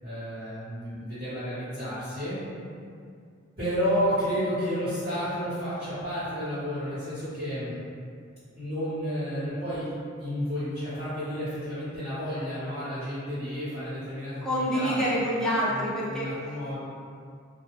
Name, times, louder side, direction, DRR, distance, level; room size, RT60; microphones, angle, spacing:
voice 1, 0.0-2.4 3.6-7.7 8.5-9.9 10.2-15.0 15.4-16.8, equal, 30° right, -17 dB, 1.3 m, -31 dB
voice 2, 14.4-16.3, equal, 5° left, -8 dB, 0.5 m, -27 dB
2.3 x 2.3 x 3.1 m, 2.3 s
head